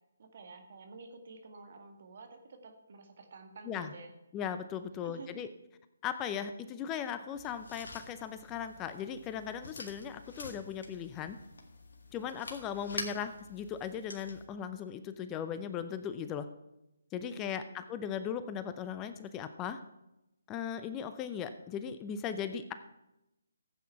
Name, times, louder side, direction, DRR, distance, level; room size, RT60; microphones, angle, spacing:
voice 1, 0.2-4.2 5.0-5.4 12.9-13.2 17.3-17.9, right 3 dB, 50° right, 4 dB, 1.9 m, -51 dB
voice 2, 4.3-5.5 6.0-11.4 12.1-16.5 17.1-19.8 20.5-22.7, left 8 dB, 20° left, 10 dB, 0.6 m, -38 dB
sound 1, 7.3-14.5, left 3 dB, 65° left, 2.0 m, -47 dB
15.0 x 8.5 x 4.7 m, 0.91 s
figure-of-eight pair, 145°, 0 cm